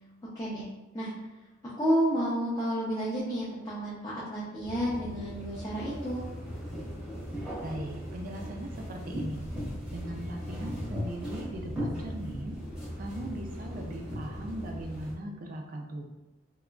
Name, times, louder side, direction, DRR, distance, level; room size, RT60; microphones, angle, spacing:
voice 1, 1.6-6.2, equal, 15° left, -9 dB, 0.5 m, -30 dB
sound 1, 4.6-15.1, equal, 5° right, 0.9 m, -38 dB
voice 2, 7.6-9.5 9.9-12.6 13.0-16.1, right 1 dB, 40° right, 2 dB, 0.3 m, -39 dB
3.6 x 2.9 x 2.3 m, 1.1 s
head